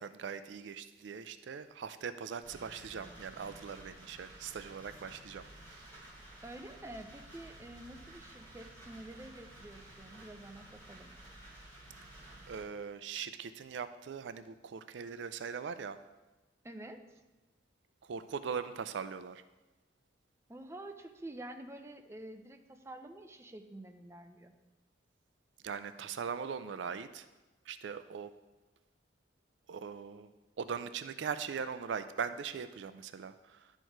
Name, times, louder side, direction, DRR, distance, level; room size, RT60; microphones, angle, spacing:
voice 1, 0.0-5.4 5.7-5.8 12.5-16.0 18.0-19.4 25.6-27.3 27.7-28.3 29.7-30.3 30.6-33.7, right 6 dB, 70° right, 12 dB, 0.4 m, -40 dB
sound 1, 2.4-12.6, right 1 dB, 10° left, 3.1 m, -53 dB
voice 2, 6.4-11.1 16.6-17.0 20.5-24.5, right 1 dB, 15° right, 6 dB, 0.5 m, -48 dB
11.0 x 4.5 x 4.6 m, 1.1 s
head